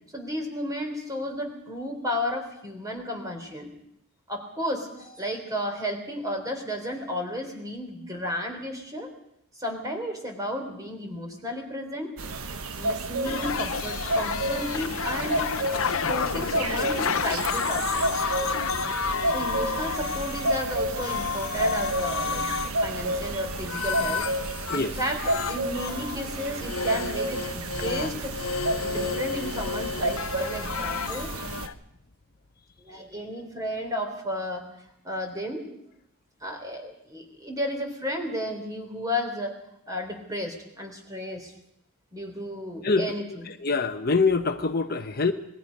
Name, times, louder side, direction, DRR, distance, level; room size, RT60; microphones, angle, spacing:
voice 1, 0.1-3.7 4.3-9.1 9.6-12.1 12.8-15.5 15.8-18.0 19.3-24.3 24.7-28.4 28.8-31.3 32.8-34.7 35.0-35.6 36.4-39.6 39.9-41.5 42.1-43.5, left 1 dB, 15° right, 3.8 m, -33 dB
sound 1, 12.2-31.7, right 2 dB, 80° right, 1.3 m, -31 dB
sound 2, 13.2-20.7 20.9-24.9 25.2-31.7, left 5 dB, 70° left, 0.8 m, -31 dB
voice 2, 43.6-45.3, left 4 dB, 45° left, 0.9 m, -24 dB
26.5 x 21.0 x 5.4 m
head